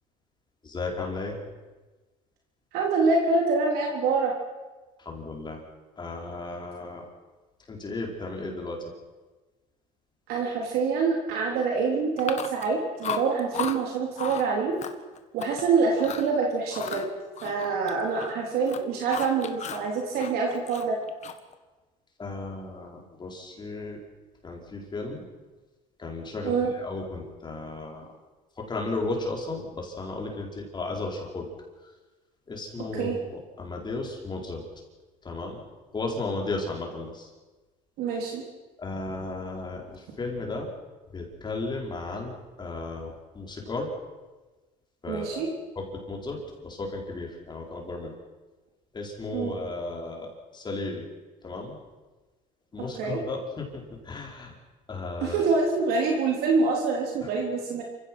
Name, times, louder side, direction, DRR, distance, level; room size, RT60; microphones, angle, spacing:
voice 1, 0.6-1.4 5.0-5.6 6.0-7.1 7.7-8.9 22.2-24.0 24.4-25.2 26.0-28.1 28.6-31.5 31.8-31.9 32.5-34.6 35.2-35.6 35.9-37.3 38.8-40.7 41.1-43.9 45.0-48.1 48.9-51.1 51.4-51.8 52.7-54.5 54.9-55.5, left 3 dB, 25° left, 0 dB, 4.7 m, -34 dB
voice 2, 2.7-4.3 10.3-14.8 15.3-17.1 17.4-21.0 26.4-26.7 32.9-33.2 38.0-38.4 45.1-45.5 49.3-49.6 53.0-53.2 55.2-57.8, right 4 dB, 70° right, 0 dB, 3.8 m, -25 dB
Chewing mastication, 12.2-12.7 13.0-13.8 14.2-14.5 14.8-15.6 16.0-16.3 16.7-18.3 18.6-19.9 20.2-21.5, left 8 dB, 45° left, 1.8 m, -35 dB
27.5 x 16.5 x 6.3 m, 1.2 s
cardioid pair, 110°, 16 cm